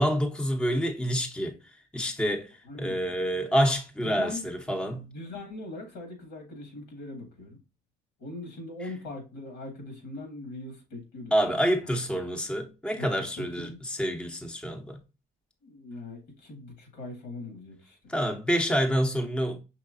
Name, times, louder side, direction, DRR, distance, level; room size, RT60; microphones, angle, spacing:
voice 1, 0.0-1.6 1.9-2.5 2.8-5.0 11.3-15.0 18.1-19.6, equal, 5° left, 0.7 m, -27 dB
voice 2, 2.6-3.1 4.0-4.4 4.9-7.6 8.2-11.9 13.0-13.8 15.6-18.1, left 2 dB, 85° left, 2.0 m, -41 dB
5.6 x 3.1 x 2.5 m
cardioid pair, 110°, 17 cm